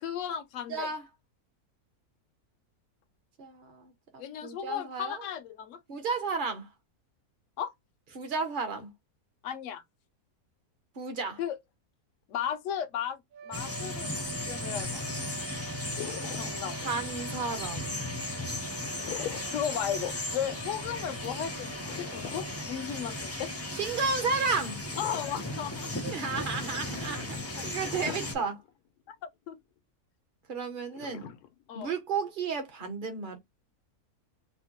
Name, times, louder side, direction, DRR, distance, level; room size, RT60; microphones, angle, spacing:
voice 1, 0.0-0.9 4.2-5.8 7.6-7.7 9.4-9.8 11.4-11.6 12.3-13.2 13.5-15.0 16.4-16.9 19.0-19.1 19.5-23.5 25.0-25.9 27.4-27.9 29.1-29.6 31.7-31.9, left 9 dB, 70° left, 0.8 m, -35 dB
voice 2, 0.7-1.0 3.4-5.2 5.9-6.7 8.1-8.9 11.0-11.4 16.7-18.0 23.7-24.8 26.0-28.6 30.5-31.3 31.7-33.4, right 4 dB, 40° right, 0.8 m, -33 dB
sound 1, 13.3-24.2, right 7 dB, 70° right, 1.0 m, -46 dB
sound 2, 13.5-28.3, left 2 dB, 20° left, 0.4 m, -36 dB
sound 3, 15.9-16.9 18.8-19.7 20.0-20.1 21.8-23.3 24.8-25.8 26.2-26.3 27.8-28.7 29.1-29.2 30.9-31.9, left 11 dB, 85° left, 1.1 m, -42 dB
4.2 x 2.1 x 2.9 m
omnidirectional pair, 1.6 m